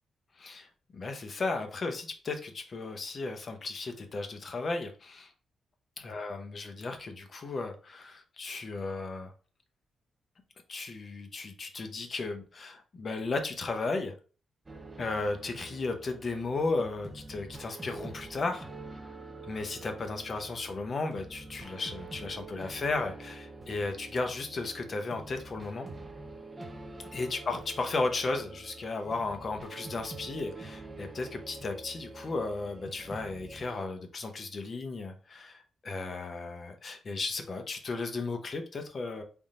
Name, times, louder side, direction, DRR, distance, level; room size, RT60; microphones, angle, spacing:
voice 1, 0.4-0.7 0.9-5.3 6.0-9.3 10.7-14.1 15.0-18.7 19.5-25.9 27.1-39.2, left 3 dB, 40° left, 6 dB, 0.7 m, -35 dB
sound 1, 14.7-33.9, right 2 dB, 25° right, 0.5 m, -46 dB
3.5 x 2.4 x 4.2 m, 0.37 s
cardioid pair, 135°, 0 cm